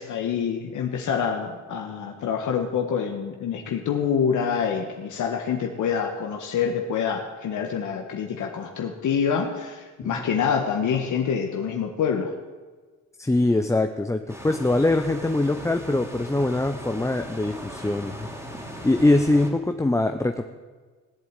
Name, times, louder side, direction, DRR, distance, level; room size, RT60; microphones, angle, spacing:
voice 1, 0.0-12.3, left 7 dB, 70° left, 2 dB, 1.6 m, -26 dB
voice 2, 13.2-18.3 18.6-20.4, left 2 dB, 10° left, 6 dB, 0.7 m, -23 dB
sound 1, 14.3-19.5, equal, 10° right, 3.1 m, -39 dB
17.5 x 8.1 x 9.0 m, 1.4 s
cardioid pair, 110°, 31 cm